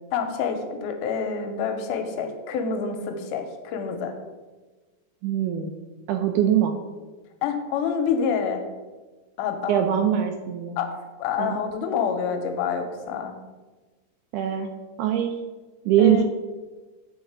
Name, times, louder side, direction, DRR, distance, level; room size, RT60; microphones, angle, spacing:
voice 1, 0.1-4.1 7.4-8.6 9.4-9.9 10.8-10.9 11.2-13.3 16.0-16.2, left 6 dB, 80° left, 5 dB, 2.1 m, -27 dB
voice 2, 5.2-5.7 6.1-6.7 9.7-10.8 11.4-11.6 14.3-14.7 15.0-15.3 15.9-16.2, right 10 dB, 80° right, 6 dB, 1.9 m, -22 dB
7.2 x 4.4 x 4.7 m, 1.3 s
omnidirectional pair, 3.9 m